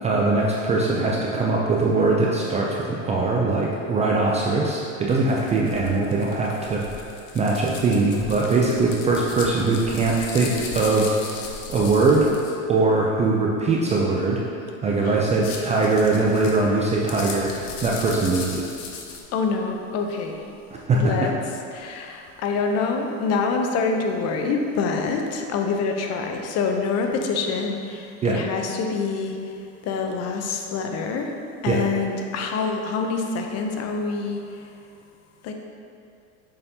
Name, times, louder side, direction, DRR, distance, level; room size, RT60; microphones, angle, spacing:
voice 1, 0.0-6.9 7.3-11.4 11.7-12.3 12.7-14.4 14.8-18.7 20.9-21.3 28.2-28.4 31.7-31.8, right 3 dB, 20° right, -3 dB, 0.3 m, -21 dB
sound 1, 5.1-12.6 15.2-19.2, left 4 dB, 70° left, 1.0 m, -37 dB
voice 2, 19.3-20.4 20.9-21.3 21.7-29.4 29.8-31.3 31.6-34.4 35.4-35.5, left 4 dB, 40° left, 3 dB, 0.6 m, -26 dB
6.9 x 5.2 x 2.7 m, 2.5 s
supercardioid pair, 120°, 40 cm